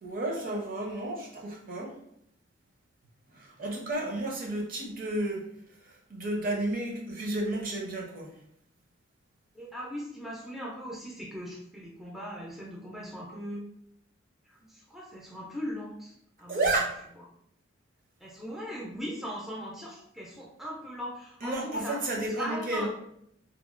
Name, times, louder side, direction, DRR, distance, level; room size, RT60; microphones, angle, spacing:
voice 1, 0.0-1.9 3.3-5.4 5.8-8.3 16.5-17.0 21.4-22.9, right 2 dB, 45° right, -1 dB, 0.6 m, -32 dB
voice 2, 9.5-13.6 14.6-16.1 16.4-16.6 18.2-22.0 22.3-22.9, equal, ahead, -4 dB, 0.4 m, -39 dB
2.8 x 2.3 x 2.4 m, 0.72 s
head